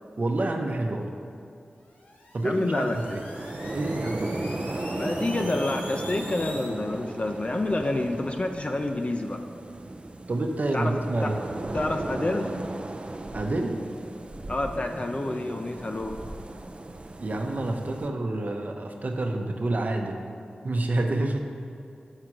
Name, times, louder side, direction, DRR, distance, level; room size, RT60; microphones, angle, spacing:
voice 1, 0.2-1.3 2.3-3.2 3.7-4.5 10.3-11.4 13.3-13.8 15.3-15.5 17.2-20.2 20.6-21.4, right 2 dB, 55° right, 3 dB, 0.8 m, -28 dB
sound 1, 1.9-6.7, left 1 dB, 80° left, 1.3 m, -44 dB
voice 2, 2.4-3.2 4.9-9.4 10.7-10.9 11.2-11.3 11.7-12.5 14.5-16.2, left 2 dB, 40° left, 4 dB, 0.5 m, -28 dB
sound 2, 2.9-18.1, right 2 dB, 35° right, 0.5 m, -36 dB
6.6 x 4.8 x 6.0 m, 2.5 s
cardioid pair, 40°, 3 cm